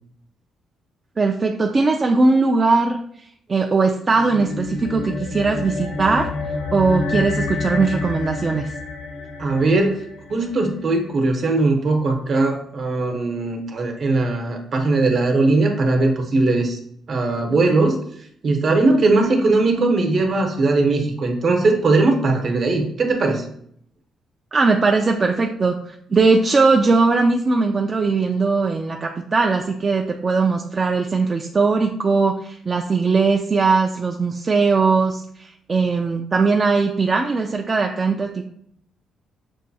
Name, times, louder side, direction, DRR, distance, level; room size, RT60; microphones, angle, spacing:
voice 1, 1.2-6.3 6.7-8.7 24.5-38.4, right 4 dB, 35° right, 2 dB, 0.3 m, -19 dB
sound 1, 4.0-10.7, left 3 dB, 65° left, 0.5 m, -28 dB
voice 2, 9.4-10.0 10.3-16.8 17.1-18.0 18.4-23.4, right 3 dB, 55° right, 3 dB, 0.9 m, -19 dB
6.2 x 2.2 x 2.7 m, 0.67 s
cardioid pair, 90°, 0 cm